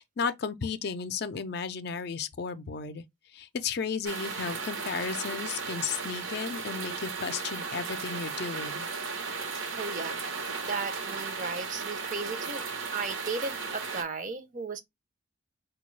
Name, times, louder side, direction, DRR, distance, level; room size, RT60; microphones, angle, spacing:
voice 1, 0.0-3.0 3.3-8.9, left 5 dB, 55° left, 0.4 m, -34 dB
sound 1, 4.0-14.0, right 5 dB, 75° right, 0.9 m, -35 dB
voice 2, 9.7-10.2 10.6-14.8, right 4 dB, 40° right, 0.6 m, -35 dB
4.4 x 2.3 x 3.1 m
head